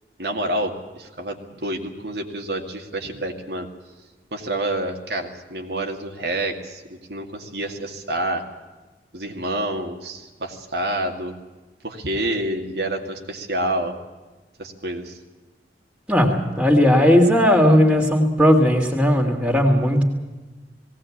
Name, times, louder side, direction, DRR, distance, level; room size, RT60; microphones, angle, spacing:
voice 1, 0.2-3.7 4.3-8.4 9.1-11.3 11.8-14.0 14.6-15.2, right 1 dB, 70° right, 2 dB, 2.3 m, -28 dB
voice 2, 16.1-20.0, equal, 5° right, 2 dB, 2.7 m, -16 dB
19.5 x 18.0 x 8.6 m, 1.2 s
head